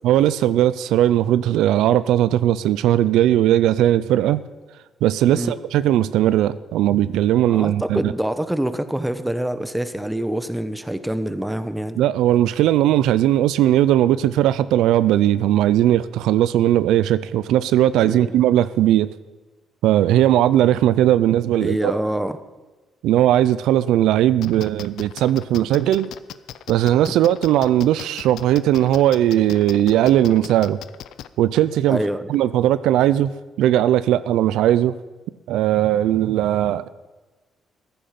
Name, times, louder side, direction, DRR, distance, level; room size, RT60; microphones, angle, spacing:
voice 1, 0.0-4.4 5.0-8.1 12.0-19.1 19.8-21.9 23.0-26.1 26.7-30.8 31.4-32.0 32.3-33.3 33.6-34.9 35.5-36.9, right 12 dB, 90° right, 0.4 m, -18 dB
voice 2, 7.5-12.0 18.0-18.3 21.5-22.4 27.1-27.2 31.9-32.3, right 1 dB, 5° right, 1.0 m, -25 dB
sound 1, 24.4-31.3, left 11 dB, 80° left, 0.5 m, -37 dB
14.5 x 10.0 x 5.9 m
cardioid pair, 90°, 0 cm